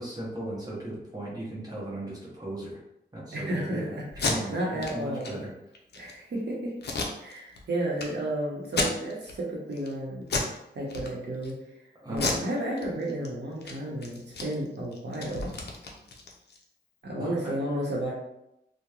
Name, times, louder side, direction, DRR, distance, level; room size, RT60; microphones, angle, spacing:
voice 1, 0.0-2.8 3.1-4.0 4.2-5.5 12.0-12.3 17.2-17.5, right 1 dB, 20° right, -6 dB, 0.8 m, -37 dB
voice 2, 3.3-5.4 6.0-6.7 7.2-10.2 10.7-11.6 12.1-15.5 17.0-18.1, right 1 dB, 70° right, -4 dB, 0.8 m, -32 dB
Packing tape duct tape, 4.1-4.3 4.8-4.9 5.2-5.3 5.7-6.1 6.8-7.6 8.0-8.1 8.6-9.3 9.7-9.9 10.3-10.6 10.9-11.5 12.1-13.3 13.6-13.7 14.0-16.6, left 3 dB, 65° left, 0.5 m, -31 dB
2.9 x 2.1 x 2.3 m, 0.84 s
wide cardioid pair, 120°, 18 cm